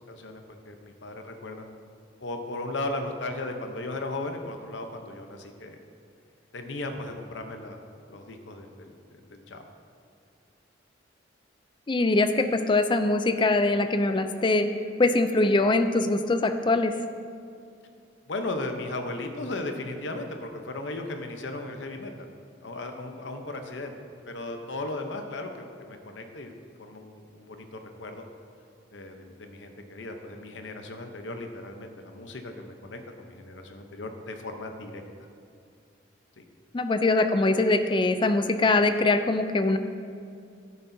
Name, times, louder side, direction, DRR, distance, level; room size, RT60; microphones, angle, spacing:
voice 1, 0.0-1.7 2.2-5.8 6.5-7.8 8.1-9.7 18.3-22.3 22.6-23.9 24.3-26.5 26.8-28.2 28.9-35.0 36.4-36.5, left 2 dB, 70° left, 5 dB, 0.8 m, -36 dB
voice 2, 11.9-14.7 15.0-16.9 36.7-39.8, left 2 dB, 25° left, 8 dB, 0.4 m, -23 dB
11.0 x 10.0 x 2.7 m, 2.4 s
head